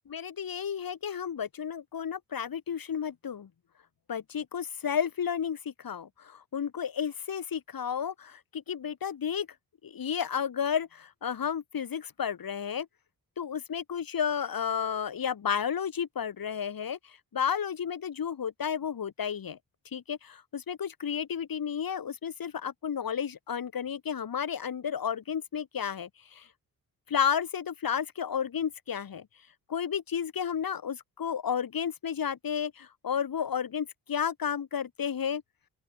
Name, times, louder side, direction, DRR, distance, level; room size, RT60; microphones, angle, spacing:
voice 1, 0.1-3.5 4.1-9.5 9.8-12.9 13.4-19.6 19.9-26.5 27.1-29.3 29.7-35.4, left 8 dB, 60° left, 3.0 m, -32 dB
open air
supercardioid pair, 55°, 39 cm